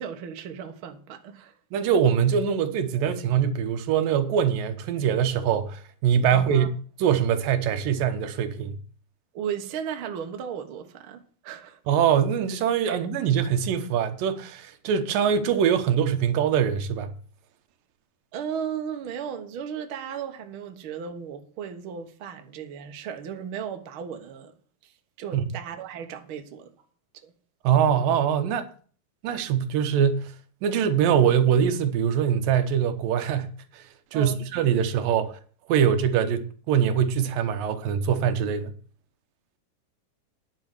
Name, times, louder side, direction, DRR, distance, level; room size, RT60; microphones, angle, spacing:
voice 1, 0.0-1.5 6.3-6.7 9.3-11.8 12.9-13.0 18.3-24.5 24.8-26.7 27.1-27.3 34.1-34.5 35.1-35.2, right 8 dB, 55° right, 1.6 m, -35 dB
voice 2, 1.7-6.7 7.0-8.8 11.9-17.1 25.3-25.4 27.6-28.7 29.2-30.3 30.6-33.8 34.1-35.3 35.7-38.7, right 8 dB, 85° right, 2.8 m, -23 dB
10.5 x 6.6 x 7.7 m
omnidirectional pair, 3.8 m